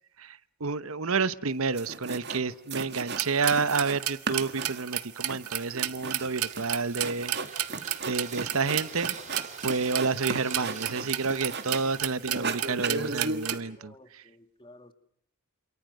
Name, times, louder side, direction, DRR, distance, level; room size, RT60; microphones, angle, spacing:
voice 1, 0.2-7.3 8.0-9.2 9.6-14.2, right 4 dB, 70° right, 15 dB, 1.0 m, -30 dB
sound 1, 1.5-1.6 1.8-2.4 2.7-12.0 12.3-13.5, right 4 dB, 50° right, 2.4 m, -36 dB
sound 2, 3.1-13.6, right 12 dB, 85° right, 1.6 m, -32 dB
sound 3, 5.8-13.3, right 5 dB, 35° right, 5.1 m, -48 dB
voice 2, 13.8-14.9, left 1 dB, 20° left, 9 dB, 2.1 m, -53 dB
28.5 x 28.0 x 6.6 m, 0.66 s
head